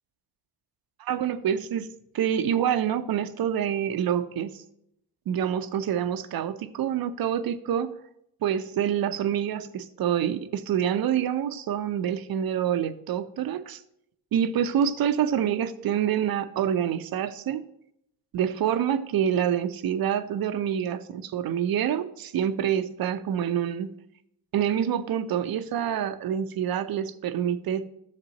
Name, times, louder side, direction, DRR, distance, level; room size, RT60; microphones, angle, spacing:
voice 1, 1.0-1.9 2.1-4.6 5.3-8.0 8.4-13.8 14.3-17.6 18.3-23.9 24.5-27.9, right 9 dB, 55° right, 10 dB, 0.8 m, -27 dB
13.0 x 6.8 x 3.0 m, 0.77 s
supercardioid pair, 60°, 44 cm